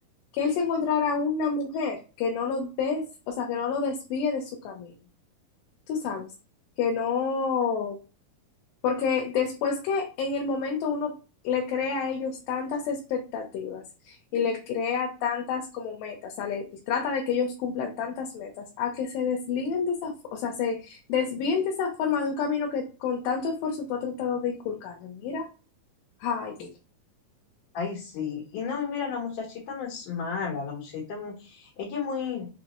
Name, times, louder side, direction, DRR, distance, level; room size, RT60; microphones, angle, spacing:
voice 1, 0.3-4.9 5.9-6.3 6.8-8.0 8.8-11.1 11.4-25.5 26.2-26.7, left 5 dB, 85° left, 1 dB, 2.5 m, -29 dB
voice 2, 27.7-32.5, left 6 dB, 70° left, -4 dB, 2.8 m, -33 dB
6.1 x 2.3 x 3.0 m, 0.32 s
omnidirectional pair, 3.9 m